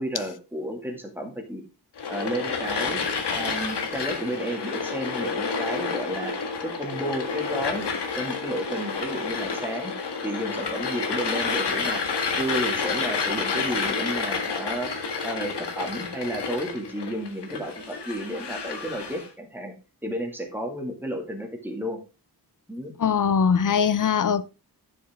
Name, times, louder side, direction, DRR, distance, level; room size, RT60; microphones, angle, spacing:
voice 1, 0.0-1.6 2.1-3.0 3.3-6.4 6.6-9.9 10.2-12.0 12.3-14.9 15.2-19.7 20.0-22.0 22.7-22.9, right 1 dB, 5° right, 2.1 m, -32 dB
sound 1, 2.0-19.3, left 5 dB, 85° left, 1.8 m, -29 dB
voice 2, 23.0-24.4, left 6 dB, 50° left, 0.6 m, -21 dB
11.0 x 6.5 x 3.6 m
wide cardioid pair, 150°, 40 cm